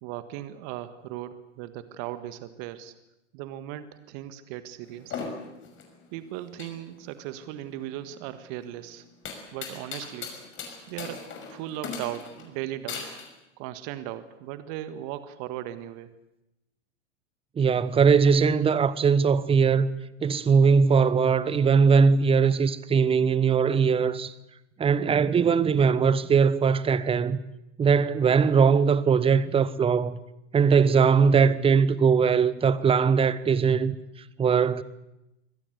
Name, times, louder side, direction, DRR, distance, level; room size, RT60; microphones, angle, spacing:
voice 1, 0.0-2.9 3.3-5.2 6.1-9.0 9.5-10.3 10.9-13.1 13.6-16.1, right 13 dB, 45° right, 1.6 m, -37 dB
sound 1, 4.8-13.3, left 5 dB, 30° left, 6.1 m, -40 dB
voice 2, 17.6-19.9 20.2-24.3 24.8-27.4 27.8-30.2 30.5-34.0 34.4-34.8, right 6 dB, 15° right, 1.0 m, -20 dB
25.0 x 18.0 x 8.2 m
figure-of-eight pair, 100°, 37 cm